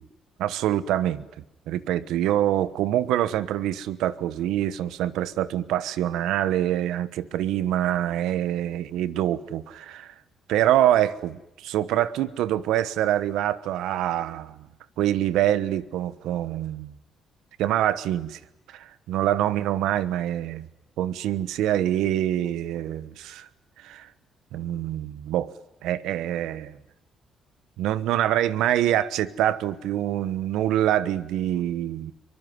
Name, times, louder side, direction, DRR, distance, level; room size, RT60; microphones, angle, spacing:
voice 1, 0.4-1.2 1.7-10.1 10.5-14.6 15.0-16.9 17.6-18.4 18.7-20.7 21.0-23.5 23.8-24.1 24.5-25.5 25.8-26.8 27.8-32.1, right 12 dB, 90° right, 1.1 m, -25 dB
23.5 x 21.5 x 9.5 m
cardioid pair, 90°, 0 cm